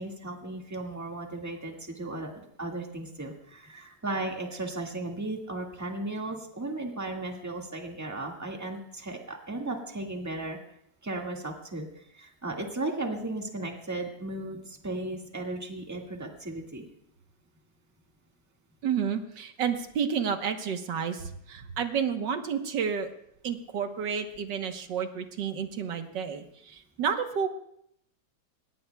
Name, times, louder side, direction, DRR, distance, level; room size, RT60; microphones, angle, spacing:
voice 1, 0.0-10.6 11.0-16.8, right 2 dB, 10° right, 1 dB, 1.7 m, -35 dB
voice 2, 18.8-23.1 23.4-27.5, right 7 dB, 90° right, 6 dB, 1.8 m, -30 dB
22.5 x 19.5 x 2.3 m, 0.72 s
omnidirectional pair, 1.9 m